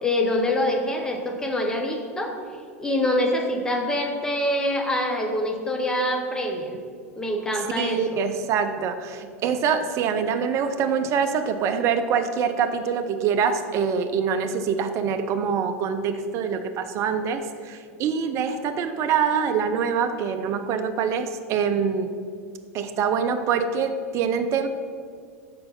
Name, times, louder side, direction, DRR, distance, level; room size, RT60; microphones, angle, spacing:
voice 1, 0.0-2.4 2.8-6.7 7.2-8.2, left 1 dB, 10° left, 2 dB, 0.9 m, -25 dB
voice 2, 7.8-22.1 22.7-24.7, right 6 dB, 40° right, 8 dB, 0.5 m, -25 dB
5.2 x 4.3 x 5.7 m, 2.1 s
figure-of-eight pair, 85°, 8 cm